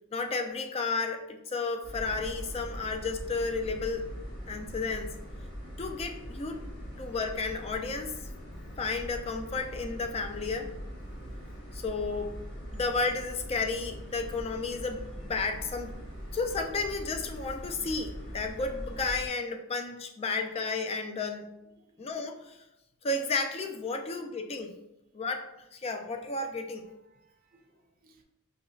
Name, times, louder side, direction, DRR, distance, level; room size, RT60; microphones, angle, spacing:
voice 1, 0.1-4.1 4.5-5.2 5.8-6.6 7.0-8.3 8.8-10.7 11.7-12.4 12.7-15.9 16.3-21.5 22.0-22.6 23.0-24.7 25.1-25.5 25.7-26.9, left 3 dB, 30° left, 0.4 m, -32 dB
sound 1, 1.8-19.3, equal, 50° left, 1.1 m, -42 dB
voice 2, 20.2-20.7 21.8-22.3 24.1-24.2 26.5-28.2, right 2 dB, 45° right, 0.5 m, -65 dB
5.0 x 2.9 x 2.3 m
head